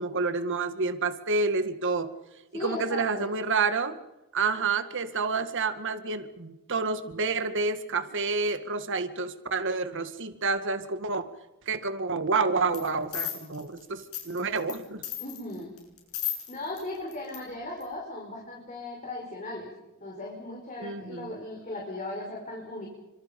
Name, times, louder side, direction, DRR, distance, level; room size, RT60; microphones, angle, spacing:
voice 1, 0.0-2.1 2.5-4.0 4.3-11.3 11.7-15.0 20.8-21.4, right 4 dB, 60° right, 10 dB, 1.9 m, -29 dB
voice 2, 2.5-3.3 15.2-15.7 16.5-19.7 20.0-22.9, left 2 dB, 35° left, -1 dB, 5.4 m, -37 dB
sound 1, 12.7-12.9 13.1-14.8 15.0-16.8 17.1-17.4 17.8-17.9, left 12 dB, 75° left, 7.2 m, -34 dB
28.5 x 26.0 x 5.4 m, 0.99 s
head